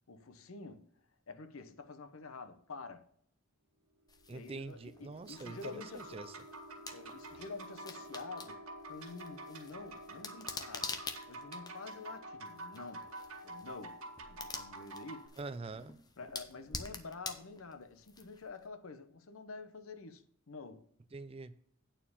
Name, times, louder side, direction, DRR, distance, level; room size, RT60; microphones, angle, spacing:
voice 1, 0.1-0.9 1.3-3.1 4.3-6.3 6.9-11.0 11.3-13.1 13.4-14.0 14.3-15.3 16.2-20.9, left 3 dB, 75° left, 0.8 m, -48 dB
sound 1, 3.9-15.8, right 1 dB, 65° right, 1.6 m, -56 dB
sound 2, 4.1-18.6, left 4 dB, 20° left, 0.6 m, -48 dB
voice 2, 4.3-6.4 15.4-16.0 21.1-21.5, right 3 dB, 25° right, 0.4 m, -44 dB
sound 3, 5.3-15.3, right 1 dB, 80° right, 1.9 m, -49 dB
9.0 x 4.4 x 7.1 m
head